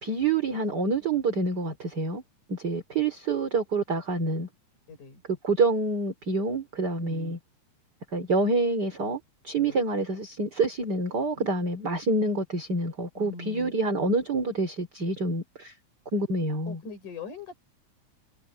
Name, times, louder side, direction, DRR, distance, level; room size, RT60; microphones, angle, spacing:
voice 1, 0.0-2.2 2.5-4.5 5.4-7.4 8.1-15.7 16.1-16.8, right 3 dB, 30° right, 4.2 m, -27 dB
voice 2, 4.9-5.2 7.0-7.4 9.5-9.8 13.2-13.7 16.7-17.6, left 4 dB, 80° left, 7.3 m, -41 dB
omnidirectional pair, 3.5 m